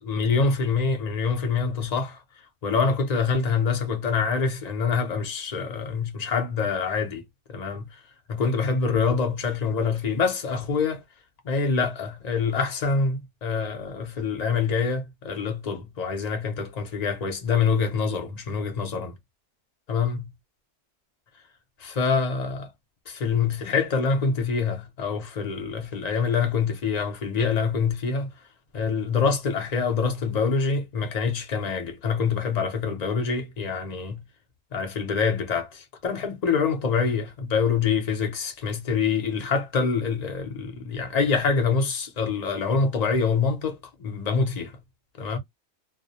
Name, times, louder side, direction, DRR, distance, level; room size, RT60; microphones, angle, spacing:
voice 1, 0.0-2.2 2.6-8.0 8.3-11.0 11.4-19.1 19.9-20.2 21.8-22.7 23.1-28.3 28.7-34.2 34.7-44.7 45.2-45.4, left 5 dB, 45° left, 0.6 m, -25 dB
2.3 x 2.1 x 2.7 m
omnidirectional pair, 1.2 m